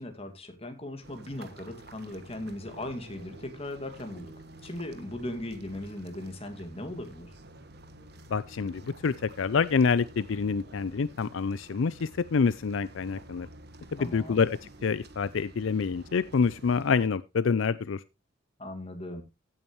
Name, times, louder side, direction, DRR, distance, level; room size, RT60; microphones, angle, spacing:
voice 1, 0.0-4.3 4.6-7.3 14.0-14.4 18.6-19.2, left 1 dB, 30° left, 6 dB, 2.2 m, -38 dB
sound 1, 1.0-17.1, right 1 dB, 50° right, 1.4 m, -50 dB
voice 2, 8.3-13.5 13.9-18.0, left 5 dB, 75° left, 16 dB, 0.5 m, -27 dB
16.0 x 8.6 x 3.1 m, 0.26 s
head